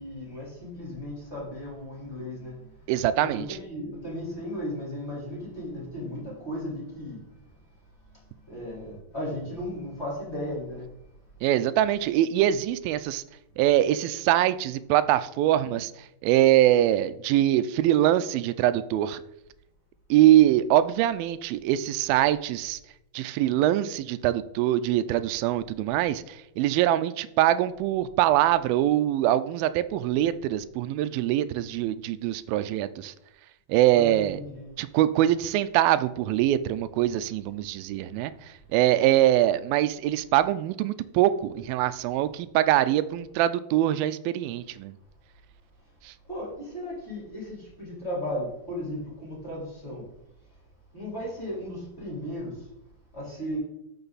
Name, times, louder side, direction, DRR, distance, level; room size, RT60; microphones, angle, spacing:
voice 1, 0.0-2.9 3.2-7.2 8.5-10.9 33.9-34.7 46.3-50.0 50.9-52.7 53.1-53.6, left 1 dB, 15° left, -6 dB, 3.7 m, -35 dB
voice 2, 2.9-3.5 11.4-13.2 13.6-19.2 20.1-22.8 23.1-33.1 33.7-34.4 34.8-45.0 46.0-46.1, right 13 dB, 80° right, 13 dB, 2.2 m, -23 dB
12.5 x 6.1 x 4.1 m, 0.85 s
omnidirectional pair, 4.4 m